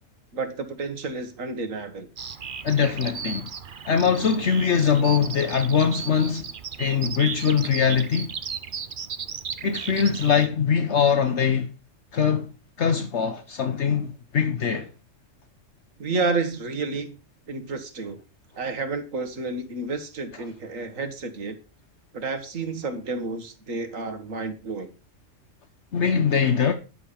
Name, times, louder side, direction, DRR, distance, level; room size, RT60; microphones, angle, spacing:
voice 1, 0.3-2.1 16.0-17.2 17.5-18.2 18.6-21.6 22.1-24.9, right 3 dB, 85° right, 2.0 m, -30 dB
Bird vocalization bird call bird song, 2.2-10.5, right 6 dB, 45° right, 0.9 m, -36 dB
voice 2, 2.6-3.5 3.8-6.5 6.8-8.3 9.6-11.7 12.1-12.5 12.8-14.9 25.9-26.7, left 7 dB, 65° left, 1.2 m, -22 dB
11.0 x 6.8 x 5.7 m
omnidirectional pair, 1.3 m